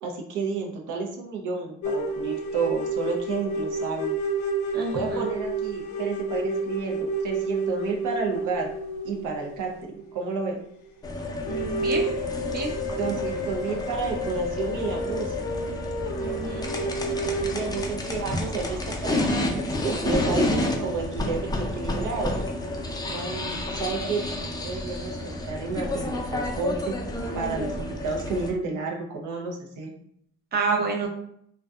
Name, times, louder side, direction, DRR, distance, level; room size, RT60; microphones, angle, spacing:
voice 1, 0.0-4.2 4.9-8.7 9.0-10.6 12.9-15.6 17.4-22.4 23.1-27.0 27.3-29.9, right 4 dB, 80° right, 2 dB, 0.6 m, -31 dB
sound 1, 1.8-10.5 10.8-10.9 11.4-17.8, right 2 dB, 70° left, 0.5 m, -30 dB
voice 2, 4.7-5.3 11.5-12.1 12.5-12.7 16.2-16.8 30.5-31.1, right 4 dB, 30° right, 0 dB, 0.6 m, -29 dB
sound 2, 11.0-28.5, left 1 dB, 15° left, 0.4 m, -30 dB
2.5 x 2.2 x 2.3 m, 0.68 s
cardioid pair, 90°, 30 cm